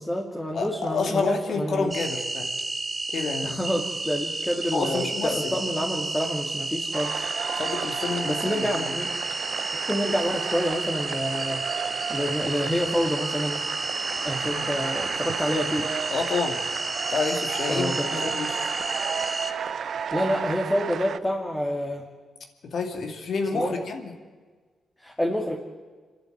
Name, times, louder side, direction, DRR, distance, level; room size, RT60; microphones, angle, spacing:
voice 1, 0.0-1.9 3.4-7.2 8.2-9.1 9.7-13.6 14.2-15.9 17.7-18.3 20.1-22.0 23.5-23.8 25.0-25.6, equal, 10° left, 0 dB, 2.3 m, -28 dB
voice 2, 0.5-2.5 3.1-3.6 4.7-5.6 7.6-9.0 14.5-14.7 16.1-16.7 17.1-18.6 22.6-24.1, left 4 dB, 65° left, 4 dB, 2.5 m, -29 dB
sound 1, 1.9-19.5, right 2 dB, 30° right, 1.3 m, -31 dB
sound 2, 6.9-21.2, right 7 dB, 65° right, 0.6 m, -33 dB
26.5 x 11.5 x 9.3 m, 1.5 s
cardioid pair, 80°, 0 cm